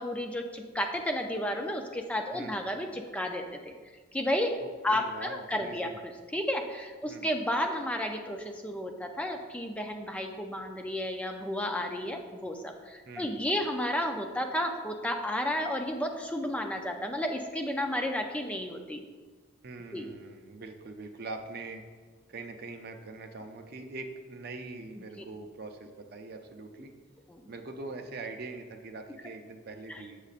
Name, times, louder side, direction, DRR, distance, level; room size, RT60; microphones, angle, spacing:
voice 1, 0.0-3.7 4.1-4.5 4.8-19.0 19.9-20.1 27.3-27.4 29.9-30.0, left 1 dB, 5° left, 3 dB, 0.4 m, -32 dB
voice 2, 4.8-6.0 7.0-7.3 13.1-13.4 19.6-21.8 22.3-26.9 27.5-30.2, right 3 dB, 50° right, 4 dB, 0.5 m, -43 dB
6.7 x 6.4 x 2.4 m, 1.4 s
head